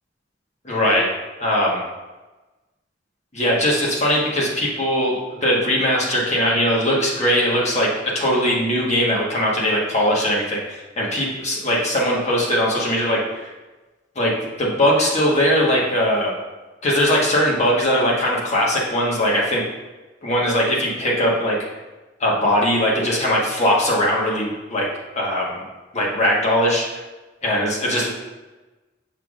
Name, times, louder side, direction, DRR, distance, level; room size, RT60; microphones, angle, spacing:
voice 1, 0.6-1.1 1.4-1.8 3.3-13.5 14.1-16.4 16.8-19.6 20.2-21.6 22.2-24.9 25.1-25.6 25.9-26.8 27.4-28.1, equal, 40° left, -3 dB, 1.3 m, -20 dB
6.7 x 5.7 x 2.5 m, 1.2 s
head